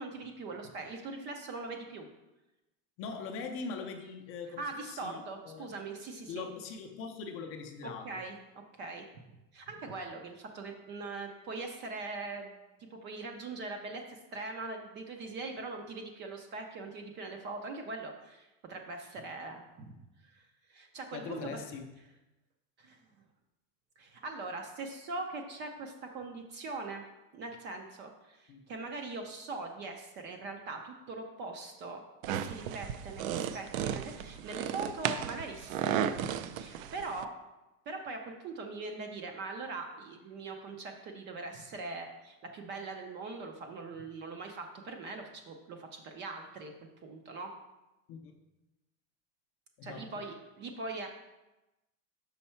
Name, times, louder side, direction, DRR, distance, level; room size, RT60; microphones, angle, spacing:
voice 1, 0.0-2.1 4.6-6.5 7.8-9.1 9.5-19.9 20.2-21.6 22.8-23.0 24.0-27.0 27.3-36.1 36.6-37.3 37.9-46.7 47.0-47.5 49.8-51.1, right 3 dB, 30° right, 4 dB, 0.4 m, -41 dB
voice 2, 3.0-5.7 6.3-8.2 21.1-21.9 28.5-28.6 48.1-48.4 49.8-50.1, left 5 dB, 35° left, 4 dB, 0.5 m, -41 dB
sound 1, 32.2-37.2, right 9 dB, 85° right, 0.5 m, -34 dB
5.6 x 5.3 x 4.3 m, 1.0 s
cardioid pair, 165°, 40 cm